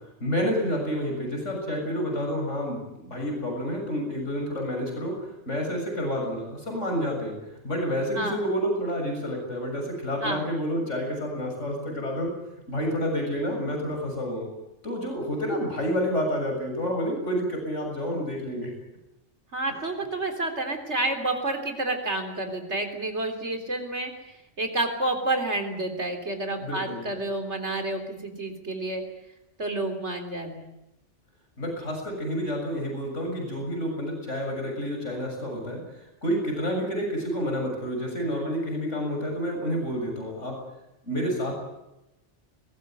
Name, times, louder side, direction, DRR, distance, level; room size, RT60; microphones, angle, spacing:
voice 1, 0.2-7.4 7.6-12.3 12.7-14.5 14.8-18.7 26.6-27.0 31.6-40.6 41.0-41.5, equal, 85° left, 2 dB, 7.5 m, -29 dB
voice 2, 19.5-24.1 24.6-29.0 29.6-30.7, right 2 dB, 70° right, 5 dB, 4.0 m, -29 dB
22.0 x 20.0 x 9.3 m, 0.92 s
omnidirectional pair, 1.2 m